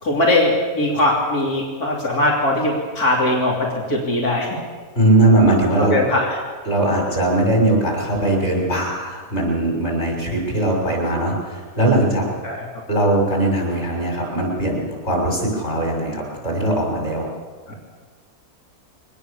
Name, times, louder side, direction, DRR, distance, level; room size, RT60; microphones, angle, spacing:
voice 1, 0.0-4.5 5.9-6.4 12.4-12.6, left 1 dB, 80° left, -4 dB, 3.5 m, -20 dB
voice 2, 5.0-6.0 6.7-12.3 12.9-17.3, right 1 dB, 45° left, -1 dB, 6.9 m, -20 dB
23.5 x 20.0 x 7.0 m, 1.5 s
omnidirectional pair, 1.6 m